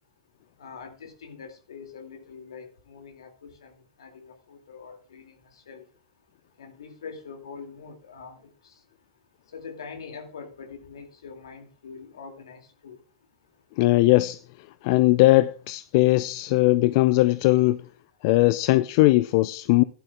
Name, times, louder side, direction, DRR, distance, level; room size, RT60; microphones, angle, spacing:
voice 1, 0.6-3.7 4.0-5.8 6.6-8.7 9.5-13.0, left 5 dB, 80° left, 2.5 m, -43 dB
voice 2, 13.8-14.4 14.8-17.8 18.2-19.8, left 19 dB, 55° left, 0.5 m, -19 dB
16.0 x 11.5 x 2.3 m
hypercardioid pair, 100°, 3 cm